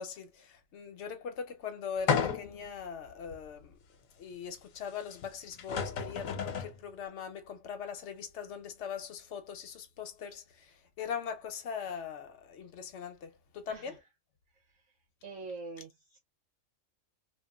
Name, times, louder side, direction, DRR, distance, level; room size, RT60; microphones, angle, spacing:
voice 1, 0.0-3.8 4.2-14.0, left 7 dB, 65° left, 1.0 m, -41 dB
sound 1, 2.1-2.7 3.3-3.4 5.2-5.3 5.6-6.8, left 6 dB, 90° left, 1.1 m, -32 dB
voice 2, 15.2-16.2, right 3 dB, 80° right, 1.2 m, -45 dB
3.0 x 2.4 x 2.3 m
omnidirectional pair, 1.4 m